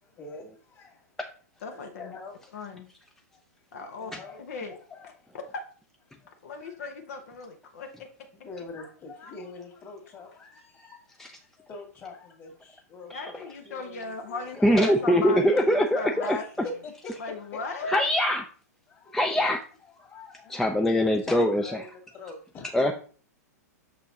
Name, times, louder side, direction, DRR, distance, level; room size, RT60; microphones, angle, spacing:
voice 1, 0.0-1.2 1.7-2.6 3.3-3.4 3.8-5.4 6.1-6.8 8.3-15.1 15.5-15.8 16.2-17.9 18.9-19.3 19.9-22.8, left 3 dB, 30° left, 2.1 m, -45 dB
voice 2, 1.6-2.2 2.5-2.9 3.7-4.1 4.4-4.8 6.4-8.1 13.1-16.4 17.2-18.0 22.8-22.9, left 4 dB, 60° left, 1.0 m, -36 dB
voice 3, 14.6-16.4 17.9-18.4 19.1-19.6 20.5-21.8 22.7-22.9, equal, 5° left, 0.5 m, -23 dB
6.2 x 6.0 x 2.8 m
hypercardioid pair, 105°, 9 cm